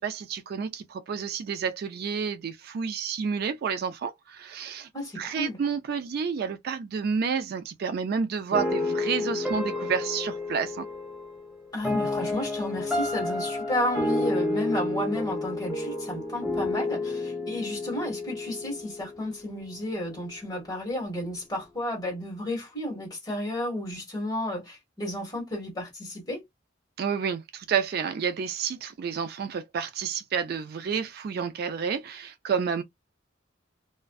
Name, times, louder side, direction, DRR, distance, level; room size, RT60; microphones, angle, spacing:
voice 1, 0.0-4.9 5.2-10.9 27.0-32.8, right 6 dB, 55° right, 0.3 m, -30 dB
voice 2, 4.9-5.6 11.7-26.4, left 1 dB, 20° left, 1.5 m, -32 dB
sound 1, 8.5-19.6, left 2 dB, 5° right, 0.5 m, -30 dB
2.4 x 2.2 x 2.3 m
head